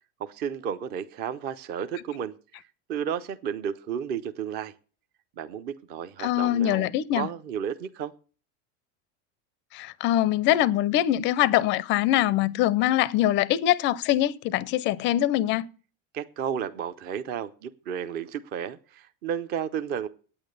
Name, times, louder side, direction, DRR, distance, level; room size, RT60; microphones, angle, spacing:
voice 1, 0.2-2.6 2.9-4.7 5.4-8.1 16.1-20.1, right 8 dB, 30° right, 0.4 m, -32 dB
voice 2, 6.2-7.3 9.7-15.7, left 13 dB, 35° left, 0.4 m, -23 dB
9.0 x 8.6 x 6.4 m
cardioid pair, 165°, 36 cm